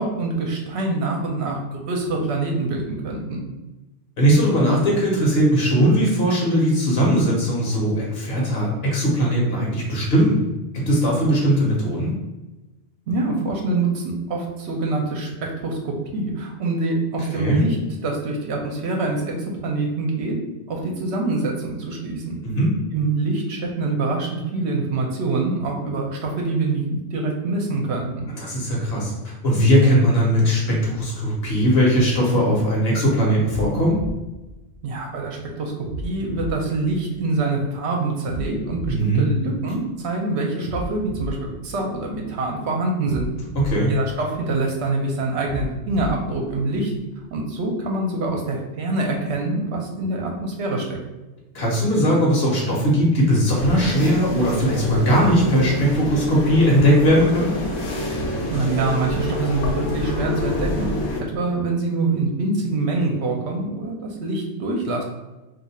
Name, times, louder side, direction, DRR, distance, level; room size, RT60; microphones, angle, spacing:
voice 1, 0.0-3.4 13.1-14.0 14.3-17.8 18.0-19.3 19.6-20.4 20.7-22.4 22.9-26.8 27.1-28.2 34.8-43.3 43.9-46.9 47.3-51.0 58.5-60.9 61.3-65.0, right 3 dB, 65° right, 0 dB, 0.9 m, -25 dB
voice 2, 4.2-10.4 10.7-12.1 17.3-17.6 22.4-22.7 28.3-34.0 38.9-39.2 43.5-43.9 51.5-57.5, equal, 60° left, -3 dB, 1.2 m, -19 dB
sound 1, 33.4-35.2 35.8-37.6 38.2-40.0 40.6-42.4 43.0-44.8 45.4-47.2, equal, 50° right, 0.5 m, -35 dB
sound 2, 53.6-61.2, left 1 dB, 90° left, 1.1 m, -27 dB
2.7 x 2.4 x 4.1 m, 1.1 s
omnidirectional pair, 1.2 m